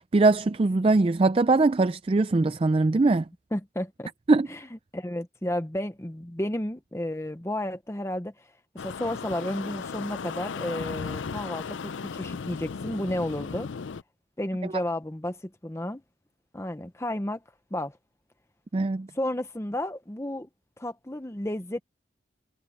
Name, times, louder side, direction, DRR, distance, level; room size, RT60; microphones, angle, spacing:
voice 1, 0.0-3.3 4.3-4.5 18.7-19.1, right 3 dB, 30° right, 0.4 m, -21 dB
voice 2, 3.5-4.1 4.5-4.7 4.9-8.5 8.7-13.7 14.4-16.0 16.5-17.4 17.7-18.0 19.1-20.5 20.8-21.8, left 1 dB, 15° left, 0.7 m, -32 dB
sound 1, 8.8-14.0, left 5 dB, 80° left, 0.5 m, -36 dB
head